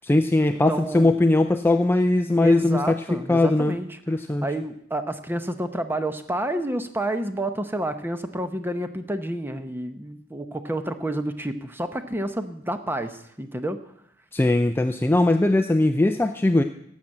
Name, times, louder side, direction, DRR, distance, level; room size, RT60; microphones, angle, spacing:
voice 1, 0.0-3.8 4.1-4.4 14.3-16.6, left 2 dB, 10° left, 7 dB, 0.4 m, -20 dB
voice 2, 0.7-1.1 2.4-4.0 4.4-13.8, right 1 dB, 10° right, 8 dB, 0.8 m, -29 dB
11.5 x 7.3 x 7.7 m, 0.72 s
head